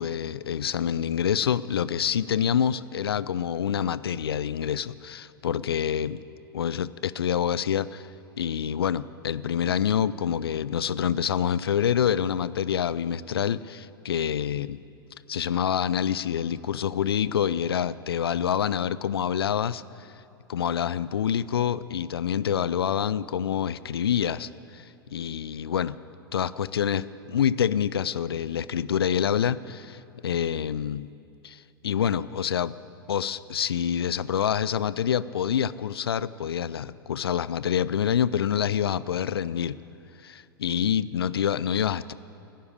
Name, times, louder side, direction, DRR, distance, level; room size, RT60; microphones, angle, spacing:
voice 1, 0.0-6.2 6.5-8.1 8.4-14.8 15.3-20.1 20.5-26.0 26.3-31.1 31.4-32.7 33.1-39.8 40.2-42.1, left 8 dB, 75° left, 18 dB, 0.4 m, -27 dB
16.5 x 10.0 x 8.5 m, 2.7 s
figure-of-eight pair, 95°, 13 cm